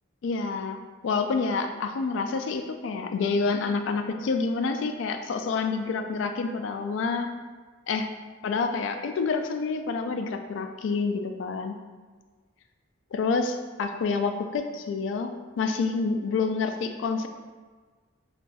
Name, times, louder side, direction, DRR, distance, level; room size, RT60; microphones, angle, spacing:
voice 1, 0.2-0.8 1.0-7.3 7.9-8.1 8.4-11.8 13.1-17.3, left 4 dB, 65° left, 7 dB, 0.3 m, -28 dB
5.2 x 2.5 x 2.3 m, 1.4 s
head